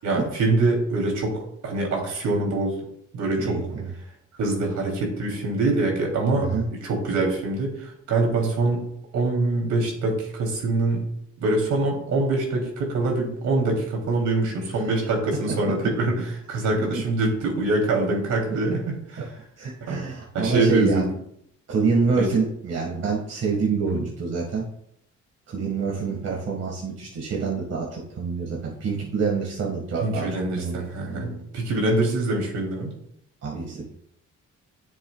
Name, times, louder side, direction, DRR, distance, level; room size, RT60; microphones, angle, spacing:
voice 1, 0.0-2.8 3.1-3.6 4.4-8.8 9.1-11.0 11.4-18.9 19.9-20.0 20.3-21.1 22.2-22.3 23.8-24.0 30.0-32.9, right 2 dB, 75° right, 0 dB, 3.2 m, -24 dB
voice 2, 3.4-3.9 6.4-6.6 14.7-14.9 16.9-17.0 19.6-21.0 21.7-24.6 25.5-30.3 30.6-31.4 33.4-33.8, right 4 dB, 55° right, -2 dB, 1.9 m, -26 dB
10.0 x 7.0 x 2.4 m, 0.73 s
cardioid pair, 90°, 30 cm